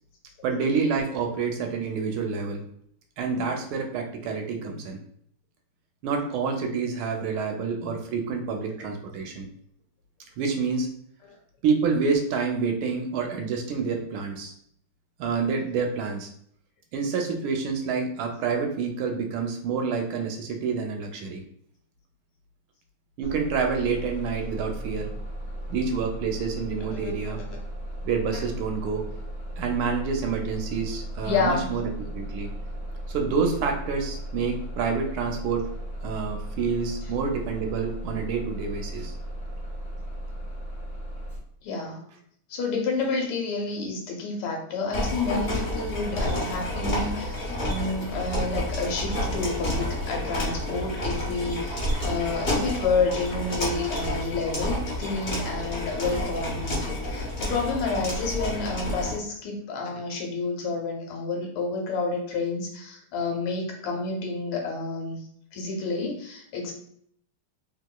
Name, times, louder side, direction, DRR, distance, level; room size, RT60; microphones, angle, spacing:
voice 1, 0.4-2.6 3.2-5.0 6.0-9.5 10.4-10.9 11.6-14.5 15.2-16.3 16.9-21.4 23.2-25.1 25.7-27.4 28.0-29.1 29.6-31.8 32.1-32.5 33.1-35.7 36.0-39.1, right 5 dB, 80° right, 3 dB, 1.3 m, -28 dB
Bus, 23.2-41.4, right 1 dB, 20° right, 0.8 m, -36 dB
voice 2, 31.2-31.7 41.6-42.0 42.5-65.2 65.5-66.7, left 4 dB, 80° left, 1 dB, 1.5 m, -29 dB
sound 1, 44.9-59.2, left 1 dB, 55° left, 0.6 m, -30 dB
3.2 x 2.9 x 2.2 m, 0.66 s
omnidirectional pair, 2.4 m